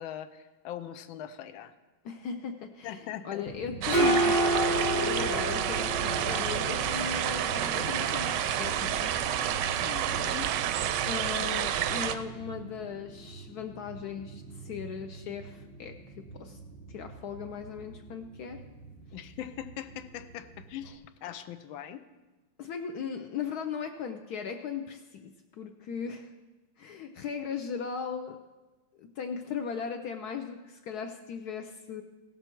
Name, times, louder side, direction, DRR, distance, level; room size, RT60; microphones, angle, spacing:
voice 1, 0.0-1.7 2.8-3.5 9.8-10.5 19.1-22.0, left 10 dB, 85° left, 11 dB, 1.4 m, -41 dB
voice 2, 2.0-9.1 11.1-16.6 16.9-18.6 22.6-26.3 26.8-28.4 29.0-32.0, left 6 dB, 70° left, 6 dB, 1.0 m, -38 dB
sound 1, 3.5-20.9, right 1 dB, 30° left, 0.3 m, -34 dB
sound 2, 3.8-12.2, right 10 dB, 75° right, 1.1 m, -29 dB
16.5 x 6.8 x 4.5 m, 1.2 s
omnidirectional pair, 2.1 m